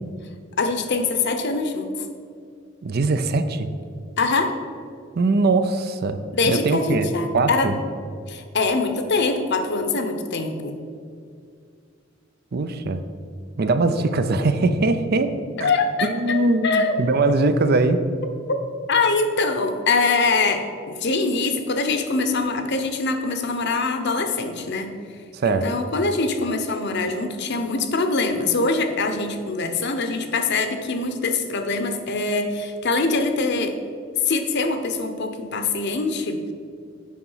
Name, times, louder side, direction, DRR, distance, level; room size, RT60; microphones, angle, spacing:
voice 1, 0.6-2.1 4.2-4.5 6.3-7.7 8.3-10.8 15.6-17.3 18.5-18.6 18.9-24.9 25.4-33.8 34.2-36.4, left 3 dB, 60° left, 7 dB, 0.8 m, -23 dB
voice 2, 2.8-3.7 5.2-6.2 6.5-7.8 12.5-13.0 13.6-15.3 15.6-15.7 16.0-18.0 25.3-25.6, right 3 dB, 50° right, 10 dB, 0.5 m, -21 dB
8.5 x 5.2 x 5.6 m, 2.2 s
head